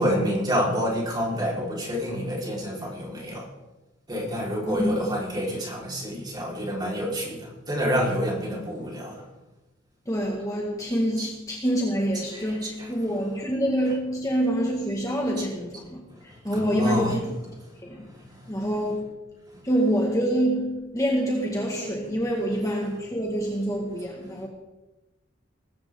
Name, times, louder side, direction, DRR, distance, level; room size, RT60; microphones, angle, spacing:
voice 1, 0.0-3.5 4.1-9.2 11.2-11.3 12.3-13.3 13.8-14.0 15.4-15.5 16.1-18.9 22.3-23.0, equal, 20° right, -2 dB, 4.5 m, -29 dB
voice 2, 10.1-17.3 17.8-18.1 18.5-19.1 19.6-24.5, equal, 15° left, -1 dB, 1.9 m, -26 dB
20.0 x 15.5 x 3.8 m, 1.1 s
head